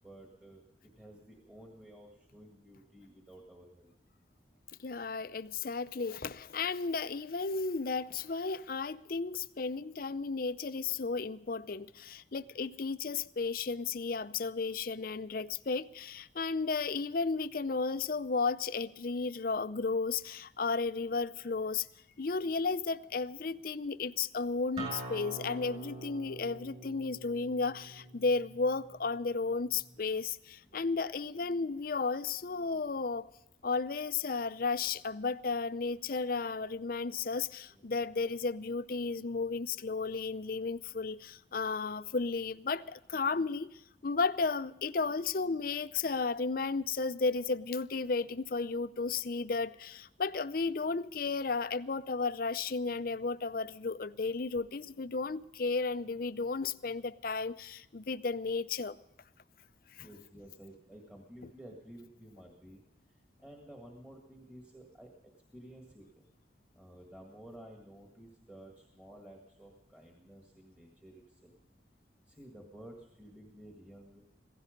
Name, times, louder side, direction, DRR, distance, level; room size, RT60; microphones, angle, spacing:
voice 1, 0.0-3.9 30.7-30.9 37.7-38.1 60.0-62.8 63.4-65.1 65.5-66.3 66.7-71.6 72.3-74.2, right 1 dB, 5° right, 1.8 m, -53 dB
voice 2, 4.8-21.9 22.2-33.3 33.6-59.0 60.0-60.1, left 4 dB, 50° left, 0.5 m, -34 dB
Acoustic guitar, 24.8-30.0, right 2 dB, 30° right, 7.1 m, -45 dB
16.5 x 15.5 x 5.3 m
head